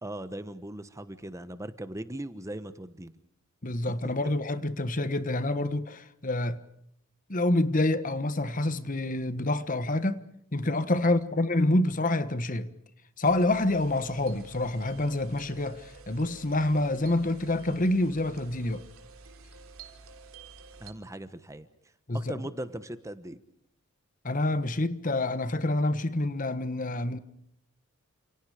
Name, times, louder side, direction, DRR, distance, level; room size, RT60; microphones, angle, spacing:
voice 1, 0.0-3.2 4.0-4.3 11.0-11.2 20.8-21.7 22.1-23.4, right 1 dB, 15° right, 1.1 m, -39 dB
voice 2, 3.6-6.6 7.3-10.2 10.5-12.7 13.2-18.8 22.1-22.4 24.2-27.2, left 2 dB, 40° left, 1.4 m, -27 dB
sound 1, 13.2-20.9, right 4 dB, 80° right, 3.4 m, -50 dB
30.0 x 28.0 x 5.0 m
head